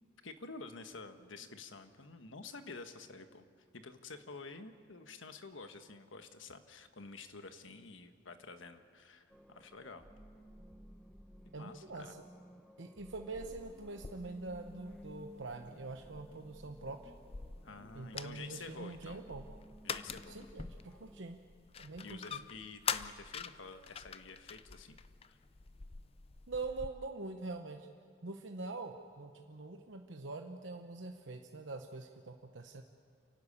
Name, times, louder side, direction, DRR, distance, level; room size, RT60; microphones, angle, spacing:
voice 1, 0.2-3.4 3.7-10.1 11.4-12.1 17.6-19.2 19.8-20.4 22.0-25.0 25.3-25.4, left 4 dB, 85° left, 8 dB, 1.3 m, -50 dB
sound 1, 9.3-21.2, equal, 5° left, 0.9 m, -56 dB
voice 2, 11.5-12.2 12.8-17.1 17.9-19.4 20.3-21.4 21.8-22.4 26.5-27.9 28.2-32.8, right 3 dB, 75° right, 4 dB, 1.0 m, -44 dB
sound 2, 13.6-26.9, left 6 dB, 30° left, 0.5 m, -46 dB
29.0 x 12.0 x 8.6 m, 2.1 s
head